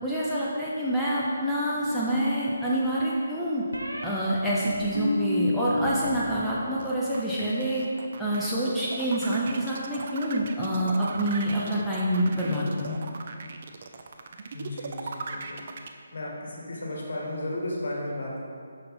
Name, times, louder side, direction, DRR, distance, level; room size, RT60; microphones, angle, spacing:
voice 1, 0.0-3.6 4.0-7.8 8.2-13.0, right 1 dB, ahead, -10 dB, 0.7 m, -27 dB
sound 1, 1.9-2.7 3.7-4.1 4.6-6.2 6.5-7.0, left 1 dB, 80° right, 0.8 m, -31 dB
sound 2, 6.8-15.9, right 4 dB, 45° right, 0.5 m, -38 dB
voice 2, 14.5-15.6 16.1-18.4, left 1 dB, 55° left, -2 dB, 1.7 m, -34 dB
6.6 x 5.7 x 3.7 m, 2.3 s
figure-of-eight pair, 145°, 0 cm